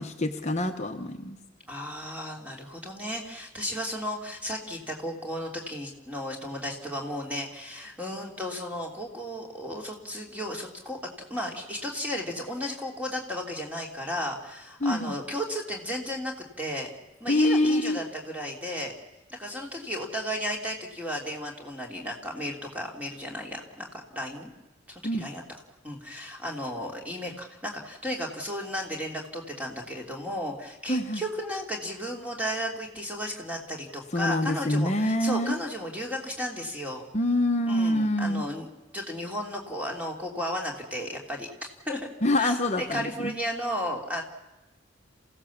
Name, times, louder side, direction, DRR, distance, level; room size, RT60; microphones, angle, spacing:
voice 1, 0.0-1.4 14.8-15.1 17.3-18.0 25.0-25.3 30.9-31.2 34.1-35.6 37.1-38.5 42.2-43.3, left 1 dB, 35° left, 5 dB, 1.0 m, -26 dB
voice 2, 1.7-11.0 11.3-16.9 17.2-18.9 19.3-24.5 24.9-25.4 25.8-37.1 37.7-38.7 38.9-41.5 41.8-42.1 42.4-44.2, equal, 10° right, 0 dB, 3.0 m, -34 dB
27.5 x 16.5 x 7.3 m, 1.1 s
head